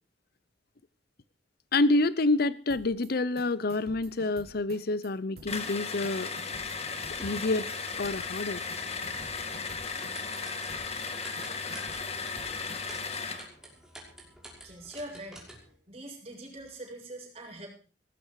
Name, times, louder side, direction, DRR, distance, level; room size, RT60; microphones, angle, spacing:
voice 1, 1.7-6.3 7.2-7.7 8.0-8.6, left 2 dB, 55° left, 17 dB, 0.7 m, -27 dB
sound 1, 2.7-3.1 3.4-5.1 5.4-5.7 6.0-7.7 8.0-8.4 8.7-10.4 10.7-11.1 11.4-13.1, right 2 dB, 60° right, 3.8 m, -50 dB
sound 2, 5.5-13.5, left 5 dB, 35° left, 2.0 m, -36 dB
sound 3, 6.7-15.8, right 1 dB, 5° right, 5.8 m, -50 dB
voice 2, 14.6-15.4 15.9-17.7, right 1 dB, 35° right, 0 dB, 7.6 m, -43 dB
18.5 x 14.5 x 4.8 m, 0.38 s
head